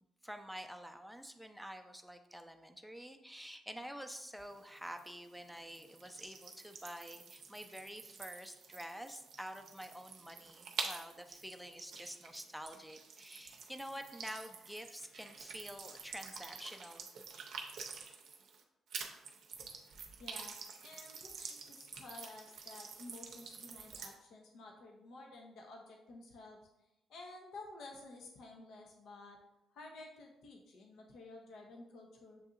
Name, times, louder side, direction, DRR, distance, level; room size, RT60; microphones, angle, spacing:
voice 1, 0.2-17.1, equal, ahead, 5 dB, 0.5 m, -48 dB
sound 1, 4.4-18.6 18.9-24.1, right 5 dB, 65° right, 0.6 m, -48 dB
voice 2, 20.2-20.5 20.8-26.6 27.1-29.4 29.7-32.4, left 2 dB, 70° left, 0 dB, 0.7 m, -52 dB
7.0 x 2.7 x 2.5 m, 0.92 s
hypercardioid pair, 50°, 0 cm